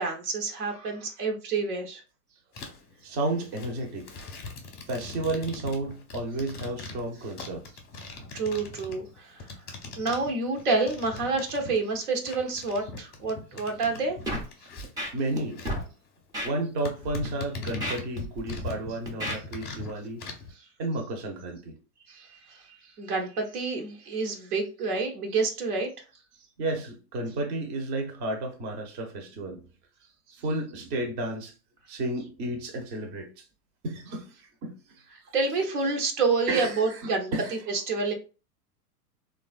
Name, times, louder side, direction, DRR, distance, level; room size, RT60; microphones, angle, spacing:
voice 1, 0.0-2.0 8.3-14.2 22.1-25.9 35.3-37.3 37.7-38.1, right 4 dB, 70° right, 0.9 m, -28 dB
sound 1, 2.5-2.9 3.3-12.0 12.3-15.9 16.3-16.4 16.8-19.0 19.2-20.5, left 3 dB, 20° left, 0.7 m, -41 dB
voice 2, 3.0-4.1 4.9-7.6 15.1-15.6 16.4-20.2 20.8-21.8 26.6-29.6 30.4-31.5 31.9-33.4 33.8-34.7 36.5-36.8 37.3-37.5, right 2 dB, 35° right, 0.8 m, -32 dB
Scratching (performance technique), 14.2-14.5 14.8-15.4 15.6-15.8 16.3-16.5 17.0-17.3 17.7-18.7 19.1-19.4, equal, 10° right, 0.4 m, -32 dB
3.2 x 2.4 x 2.3 m
hypercardioid pair, 110°, 48 cm